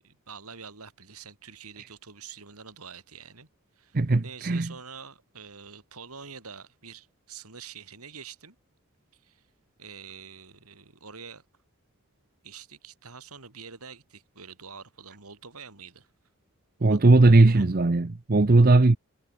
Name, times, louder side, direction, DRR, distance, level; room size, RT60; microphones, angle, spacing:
voice 1, 0.0-3.5 3.8-4.0 4.2-8.6 9.1-9.5 9.8-11.5 12.4-16.1 16.8-17.7, right 6 dB, 85° right, 3.9 m, -46 dB
voice 2, 3.9-4.7 16.8-19.0, right 2 dB, 40° right, 0.7 m, -18 dB
head